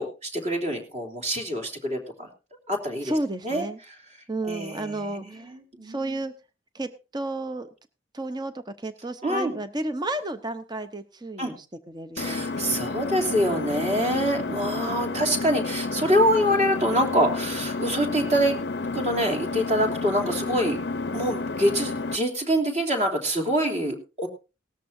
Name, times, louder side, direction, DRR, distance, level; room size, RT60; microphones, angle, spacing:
voice 1, 0.0-2.3 2.7-3.1 3.4-3.7 4.5-6.2 9.2-9.5 11.4-11.5 12.2-18.6 18.9-20.8 21.1-24.3, equal, 35° right, 3 dB, 3.1 m, -25 dB
voice 2, 3.0-3.8 4.3-5.5 5.8-6.3 6.7-7.7 8.1-12.8 14.3-14.9, right 2 dB, 20° right, 10 dB, 0.8 m, -32 dB
Engine, 12.2-22.2, left 3 dB, 55° left, 0.6 m, -31 dB
18.0 x 13.5 x 2.7 m, 0.31 s
head